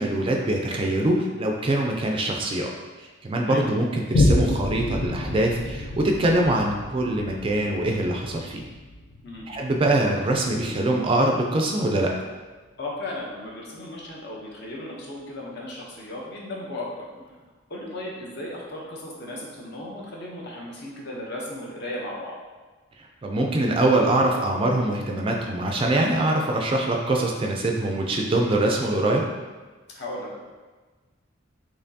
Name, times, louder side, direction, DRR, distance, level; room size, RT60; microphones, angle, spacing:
voice 1, 0.0-2.7 3.0-8.6 9.5-12.1 23.2-29.2, right 1 dB, 25° right, 1 dB, 0.3 m, -23 dB
Boom, 4.1-11.0 11.6-11.7, left 2 dB, 85° left, 0.5 m, -28 dB
voice 2, 12.8-17.1 17.7-22.3 29.9-30.4, left 1 dB, 55° left, -3 dB, 0.8 m, -35 dB
4.2 x 3.0 x 2.7 m, 1.3 s
head